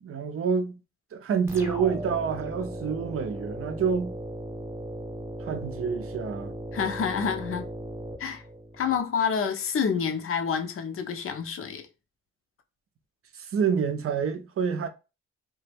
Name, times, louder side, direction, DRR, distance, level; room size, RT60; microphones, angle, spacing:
voice 1, 0.0-0.8 1.1-4.2 5.4-6.5 13.3-14.9, right 6 dB, 50° right, 0.5 m, -28 dB
sound 1, 1.5-9.0, right 1 dB, 10° right, 0.8 m, -37 dB
voice 2, 6.7-7.6 8.2-8.4 8.8-11.9, left 6 dB, 45° left, 0.6 m, -28 dB
2.1 x 2.1 x 3.2 m
supercardioid pair, 50°, 30 cm